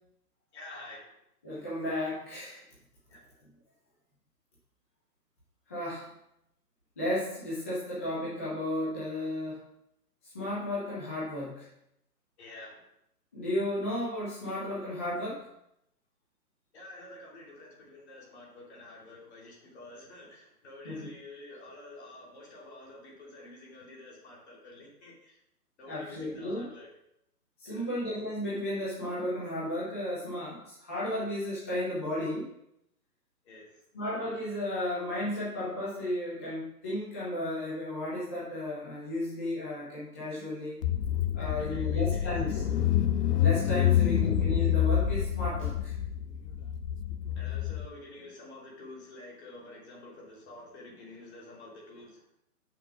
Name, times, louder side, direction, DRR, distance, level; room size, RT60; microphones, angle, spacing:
voice 1, 0.5-1.1 3.1-3.2 12.4-12.8 16.7-25.4 25.8-26.9 27.6-27.9 33.4-33.7 41.4-42.6 43.8-43.9 47.4-52.2, left 2 dB, 45° left, -3 dB, 2.8 m, -49 dB
voice 2, 1.4-2.6 5.7-6.1 7.0-9.6 10.3-11.6 13.3-15.4 20.8-21.1 25.8-26.7 27.6-32.4 33.9-40.8 41.3-42.7 43.4-45.9, left 1 dB, 10° left, -9 dB, 0.5 m, -34 dB
Car / Engine, 40.8-47.8, left 10 dB, 80° left, 0.7 m, -27 dB
7.3 x 5.9 x 4.7 m, 0.79 s
hypercardioid pair, 150°, 47 cm